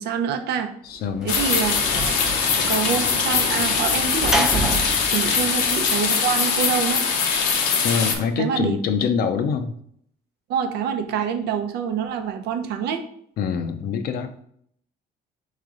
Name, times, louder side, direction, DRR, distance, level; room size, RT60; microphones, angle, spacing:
voice 1, 0.0-0.7 1.2-1.8 2.7-7.0 8.3-8.8 10.5-13.0, right 7 dB, 75° right, 6 dB, 0.7 m, -26 dB
voice 2, 0.8-1.3 7.8-9.7 13.4-14.3, left 6 dB, 65° left, 8 dB, 0.6 m, -24 dB
Sliding door / Slam, 1.0-6.4, right 1 dB, 5° right, 0.6 m, -30 dB
sound 1, 1.3-8.1, left 5 dB, 90° left, 0.9 m, -22 dB
4.3 x 3.3 x 3.8 m, 0.66 s
cardioid pair, 110°, 17 cm